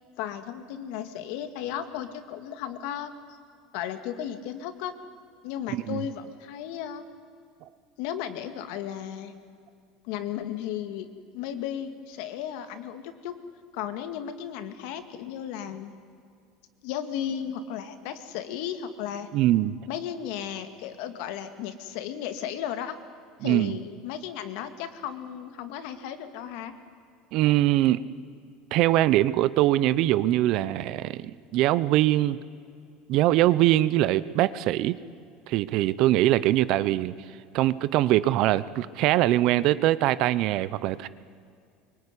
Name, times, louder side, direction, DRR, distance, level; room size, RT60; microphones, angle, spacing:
voice 1, 0.2-3.4 3.7-4.9 5.4-7.1 8.0-9.4 10.0-11.1 11.3-13.4 13.7-15.9 16.8-19.3 19.9-23.0 23.4-26.8, left 10 dB, 60° left, 9 dB, 2.2 m, -35 dB
voice 2, 19.3-19.7 23.4-23.7 27.3-28.0 28.7-32.4 33.1-34.9 35.5-37.1 37.5-41.1, right 15 dB, 45° right, 17 dB, 0.8 m, -22 dB
24.5 x 23.5 x 10.0 m, 2.3 s
cardioid pair, 175°, 0 cm